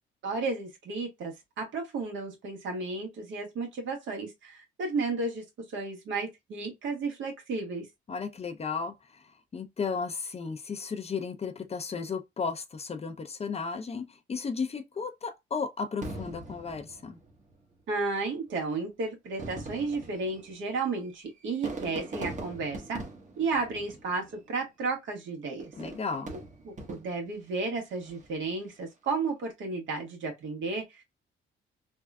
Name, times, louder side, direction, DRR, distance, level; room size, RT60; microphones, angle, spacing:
voice 1, 0.2-7.9 17.9-23.0 23.4-25.7 26.7-31.0, right 3 dB, 75° right, 1.6 m, -33 dB
voice 2, 8.1-17.2 25.8-26.3, left 5 dB, 30° left, 0.6 m, -34 dB
Fireworks, 16.0-17.6 18.5-18.6 19.2-24.5 25.6-27.4 27.9-28.4, right 2 dB, 40° right, 1.1 m, -42 dB
3.5 x 2.5 x 2.2 m
cardioid pair, 90°, 20 cm